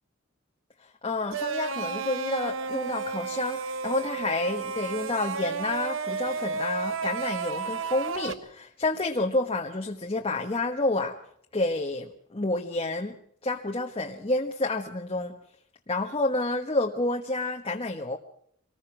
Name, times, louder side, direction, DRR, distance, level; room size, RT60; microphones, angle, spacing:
voice 1, 1.0-11.2 11.5-13.1 13.4-15.3 15.9-18.2, left 2 dB, 30° left, 2 dB, 1.3 m, -29 dB
sound 1, 1.3-8.3, right 5 dB, 70° right, 1.0 m, -32 dB
25.0 x 19.5 x 6.2 m, 0.65 s
head